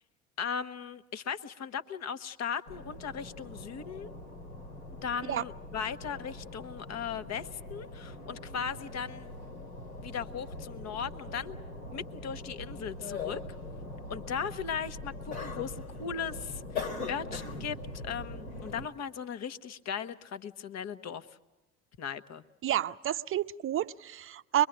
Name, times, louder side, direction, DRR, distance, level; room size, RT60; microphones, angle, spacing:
voice 1, 0.4-4.1 5.0-9.3 10.0-11.6 11.9-13.4 14.1-21.3 22.0-22.4, left 7 dB, 40° left, 1.2 m, -37 dB
sound 1, 2.7-18.9, left 3 dB, 80° left, 2.6 m, -42 dB
voice 2, 22.6-24.7, right 11 dB, 30° right, 0.7 m, -30 dB
24.5 x 22.5 x 8.0 m
figure-of-eight pair, 65°, 42 cm